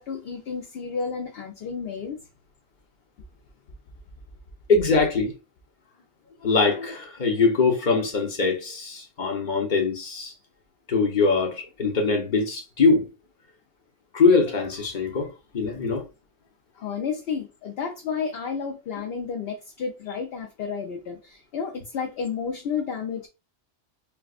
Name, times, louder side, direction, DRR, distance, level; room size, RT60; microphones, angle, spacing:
voice 1, 0.0-2.2 16.8-23.3, left 6 dB, 60° left, 0.8 m, -31 dB
voice 2, 4.7-5.3 6.4-10.3 10.9-13.1 14.1-16.0, left 4 dB, 40° left, 1.0 m, -22 dB
4.6 x 2.2 x 2.4 m
omnidirectional pair, 1.2 m